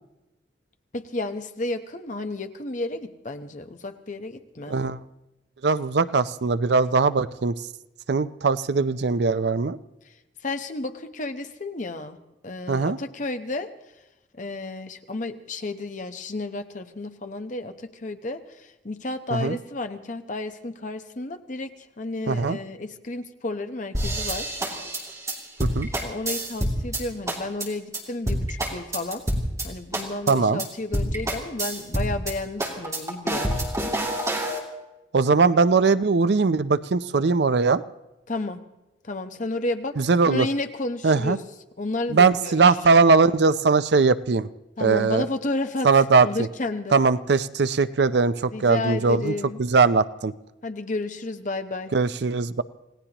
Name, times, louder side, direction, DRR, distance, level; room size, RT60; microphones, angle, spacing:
voice 1, 0.9-4.8 10.1-10.2 10.4-12.2 12.4-13.7 14.3-21.7 22.0-24.6 26.0-29.2 29.6-33.6 38.3-38.6 39.0-41.4 41.8-42.8 44.8-45.9 46.2-47.0 48.5-49.6 50.6-51.9, left 2 dB, 45° left, 8 dB, 1.0 m, -32 dB
voice 2, 4.7-5.0 5.6-7.5 8.1-9.8 12.7-13.0 19.3-19.6 22.3-22.6 25.6-25.9 30.3-30.6 35.1-37.8 40.0-40.5 41.0-41.4 42.1-44.5 44.8-45.3 45.8-46.3 46.9-49.3 49.6-50.3 51.9-52.6, right 4 dB, 65° right, 14 dB, 0.5 m, -20 dB
sound 1, 23.9-27.0 27.3-27.7 27.9-28.0 28.3-29.7 29.9-30.3 30.6-30.7 30.9-32.3 32.6-34.6, right 1 dB, 20° right, 2.7 m, -27 dB
27.5 x 17.5 x 3.0 m, 0.97 s
head